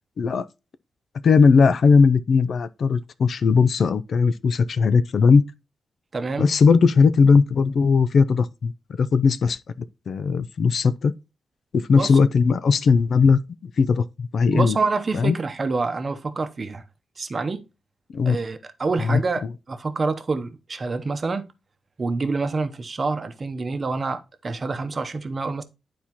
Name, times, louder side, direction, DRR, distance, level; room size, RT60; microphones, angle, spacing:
voice 1, 1.2-5.4 6.4-8.7 9.0-9.6 10.1-11.1 11.7-14.8 15.1-15.4 18.1-18.4 19.0-19.2, left 5 dB, 60° left, 0.4 m, -18 dB
voice 2, 6.1-6.5 11.9-12.1 14.5-16.8 17.2-17.6 18.2-21.4 22.0-25.6, right 3 dB, 35° right, 0.8 m, -27 dB
11.5 x 4.3 x 2.9 m
wide cardioid pair, 120°, 0 cm